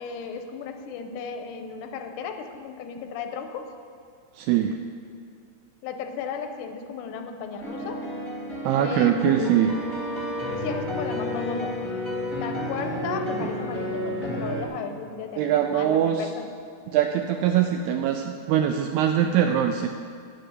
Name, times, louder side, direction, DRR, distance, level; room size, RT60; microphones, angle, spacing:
voice 1, 0.0-3.7 5.8-8.0 8.8-9.5 10.6-11.8 12.3-16.5, left 6 dB, 85° left, 6 dB, 2.9 m, -34 dB
voice 2, 4.4-4.8 8.6-9.7 13.4-13.5 15.4-16.3 16.9-19.9, right 10 dB, 85° right, 5 dB, 2.3 m, -22 dB
sound 1, 7.6-14.6, equal, ahead, 1.0 m, -31 dB
9.4 x 7.8 x 7.8 m, 2.3 s
omnidirectional pair, 5.1 m